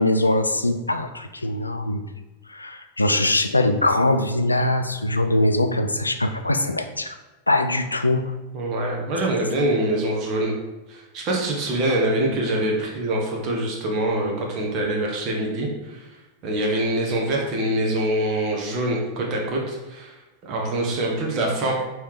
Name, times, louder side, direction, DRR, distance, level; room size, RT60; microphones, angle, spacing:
voice 1, 0.0-2.0 2.5-7.2 7.5-8.3, left 1 dB, 80° left, 8 dB, 0.3 m, -22 dB
voice 2, 8.5-10.5 10.9-16.1 16.4-20.1 20.4-21.7, right 1 dB, 40° right, -1 dB, 1.1 m, -24 dB
3.4 x 3.2 x 4.7 m, 1.1 s
figure-of-eight pair, 90°, 0 cm